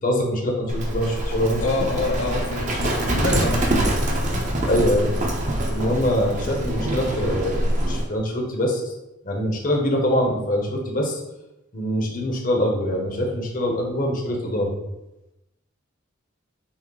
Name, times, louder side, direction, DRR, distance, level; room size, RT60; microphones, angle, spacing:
voice 1, 0.0-1.7 4.7-5.1 5.7-7.6 7.8-8.8 9.2-11.2 11.7-14.8, equal, 40° left, 0 dB, 0.7 m, -23 dB
Livestock farm animals working animals, 0.7-8.0, right 1 dB, 35° right, 0.7 m, -24 dB
voice 2, 1.6-3.9, left 2 dB, 80° left, 2 dB, 0.6 m, -26 dB
6.2 x 2.1 x 3.8 m, 0.94 s
head